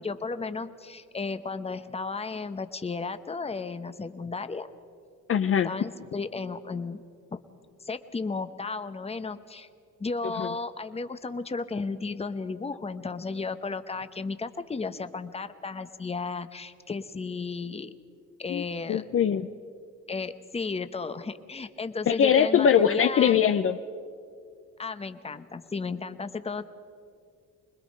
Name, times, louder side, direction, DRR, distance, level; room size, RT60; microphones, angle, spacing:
voice 1, 0.0-4.7 5.6-7.0 7.3-7.4 7.8-9.7 10.0-17.9 18.4-19.1 20.1-23.4 24.8-26.6, left 4 dB, 20° left, 11 dB, 0.9 m, -34 dB
voice 2, 5.3-5.7 10.4-10.5 18.5-18.6 18.9-19.5 22.1-23.8, left 8 dB, 45° left, 9 dB, 0.6 m, -22 dB
25.5 x 20.5 x 5.3 m, 2.3 s
cardioid pair, 90°, 30 cm